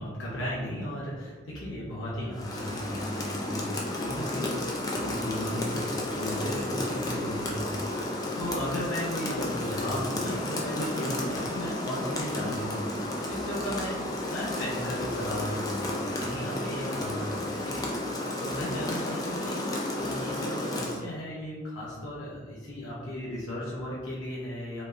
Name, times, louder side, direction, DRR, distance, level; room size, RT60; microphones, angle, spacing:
voice 1, 0.0-4.6 4.9-12.9 13.2-17.3 17.6-24.8, equal, 85° left, -7 dB, 0.9 m, -35 dB
Rain, 2.3-21.0, left 1 dB, 20° left, 0.4 m, -32 dB
3.9 x 3.4 x 2.5 m, 1.4 s
head